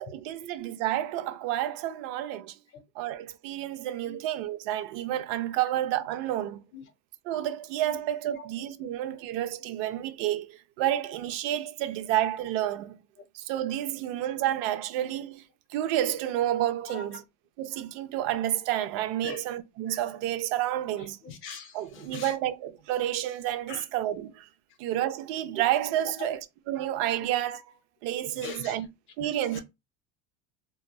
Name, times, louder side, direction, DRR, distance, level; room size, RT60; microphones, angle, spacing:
voice 1, 0.0-2.5 3.0-6.6 7.3-13.0 13.3-15.4 15.7-17.2 17.6-21.2 21.7-24.4 24.8-27.6 28.0-28.9 29.2-29.6, right 12 dB, 70° right, 0.5 m, -30 dB
voice 2, 21.2-22.3 23.7-23.9 26.2-26.3 28.4-28.8 29.5-29.6, left 6 dB, 40° left, 0.6 m, -41 dB
2.8 x 2.3 x 2.3 m
cardioid pair, 155°, 33 cm